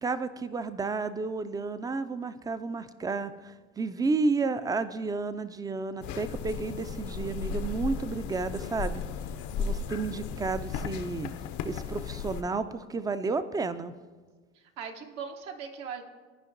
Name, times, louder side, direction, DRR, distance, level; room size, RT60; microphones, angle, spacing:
voice 1, 0.0-9.0 9.6-11.3 11.6-13.9, right 3 dB, 10° right, 12 dB, 0.3 m, -31 dB
sound 1, 6.0-12.4, left 5 dB, 60° left, 0.6 m, -35 dB
voice 2, 14.5-16.0, right 6 dB, 70° right, 4 dB, 1.0 m, -39 dB
14.0 x 5.1 x 2.6 m, 1.4 s
hypercardioid pair, 65°, 35 cm